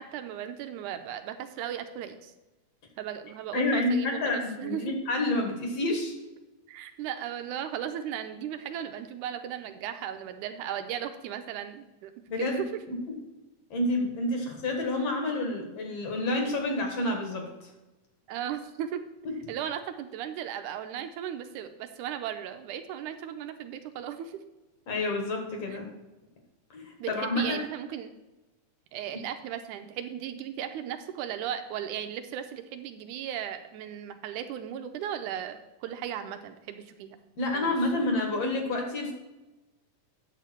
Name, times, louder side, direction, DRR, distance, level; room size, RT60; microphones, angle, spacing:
voice 1, 0.0-2.3 3.0-4.9 6.7-12.1 12.4-12.7 18.3-19.0 19.5-24.4 25.7-25.8 27.0-28.1 28.9-37.2 37.5-38.1, right 10 dB, 80° right, 8 dB, 2.1 m, -36 dB
voice 2, 3.5-6.1 12.3-12.6 13.7-17.7 19.3-19.4 24.9-25.9 26.7-27.4 37.4-39.1, left 2 dB, 55° left, 2 dB, 2.2 m, -29 dB
9.2 x 7.0 x 4.4 m, 1.1 s
omnidirectional pair, 3.6 m